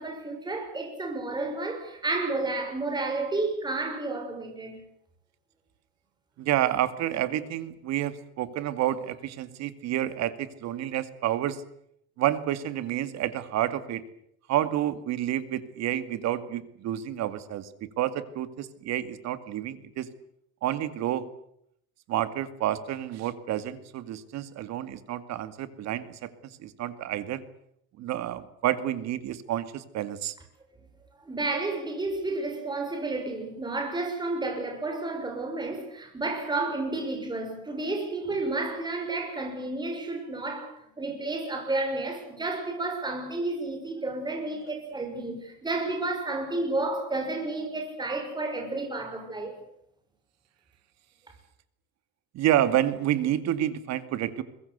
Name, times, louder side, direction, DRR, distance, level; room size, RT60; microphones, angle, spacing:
voice 1, 0.0-4.8 31.2-49.6, right 2 dB, 15° right, 6.7 m, -31 dB
voice 2, 6.4-11.6 12.2-14.0 14.5-17.7 18.0-20.1 20.6-21.3 22.1-26.3 26.6-27.4 28.0-30.3 52.3-54.4, right 12 dB, 60° right, 2.3 m, -29 dB
23.0 x 21.0 x 8.2 m
cardioid pair, 145°, 30 cm